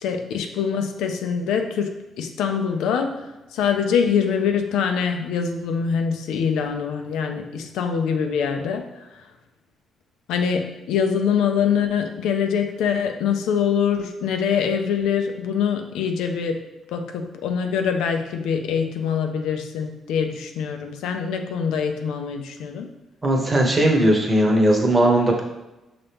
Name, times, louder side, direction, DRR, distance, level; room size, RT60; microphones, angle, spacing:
voice 1, 0.0-1.9 2.2-3.1 3.5-8.8 10.3-16.6 16.9-22.9, left 7 dB, 90° left, 5 dB, 0.4 m, -24 dB
voice 2, 23.2-25.4, right 1 dB, 20° right, 1 dB, 0.9 m, -18 dB
5.4 x 2.9 x 3.4 m, 1.0 s
cardioid pair, 90°, 0 cm